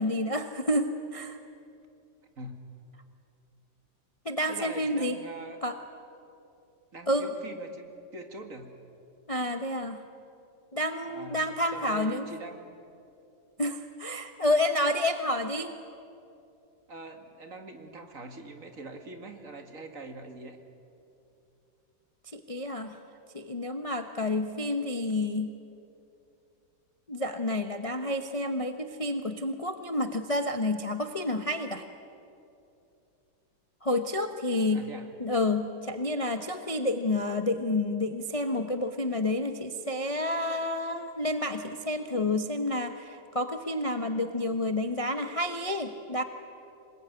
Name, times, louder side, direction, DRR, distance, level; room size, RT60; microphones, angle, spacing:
voice 1, 0.0-1.4 4.2-5.2 5.6-5.8 7.1-7.3 9.3-10.0 10.7-12.2 13.6-15.7 22.3-23.0 23.3-25.5 27.1-31.8 33.8-34.9 35.2-46.2, left 1 dB, 25° left, 7 dB, 0.8 m, -29 dB
voice 2, 4.5-5.6 6.9-7.8 8.1-8.7 11.0-12.6 16.9-20.6 34.7-35.1, right 2 dB, 45° right, 5 dB, 2.3 m, -43 dB
26.5 x 20.5 x 9.6 m, 2.7 s
omnidirectional pair, 2.0 m